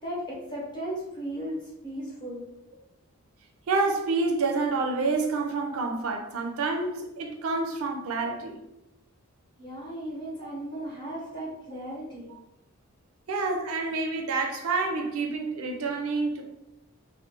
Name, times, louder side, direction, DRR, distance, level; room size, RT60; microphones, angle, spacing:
voice 1, 0.0-2.5 9.6-12.3, right 1 dB, 20° left, 0.8 m, -36 dB
voice 2, 3.7-8.6 13.3-16.4, right 3 dB, 70° right, 0.4 m, -28 dB
2.4 x 2.1 x 2.8 m
head